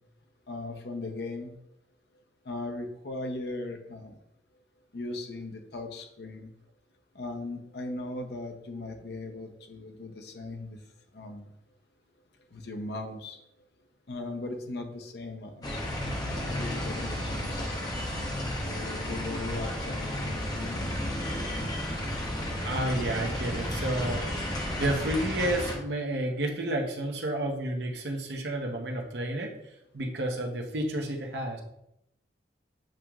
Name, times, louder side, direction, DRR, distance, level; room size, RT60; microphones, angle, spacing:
voice 1, 0.5-1.5 2.5-4.1 4.9-6.5 7.1-10.8 11.1-11.5 12.5-13.4 14.1-15.8 16.4-17.6 18.6-20.9, left 2 dB, 65° left, 4 dB, 0.7 m, -38 dB
sound 1, 15.6-25.7, left 1 dB, 25° left, 0.7 m, -32 dB
voice 2, 22.6-24.3 24.8-29.5 29.9-31.6, right 1 dB, 70° right, 2 dB, 0.8 m, -30 dB
7.4 x 2.9 x 2.4 m, 0.80 s
head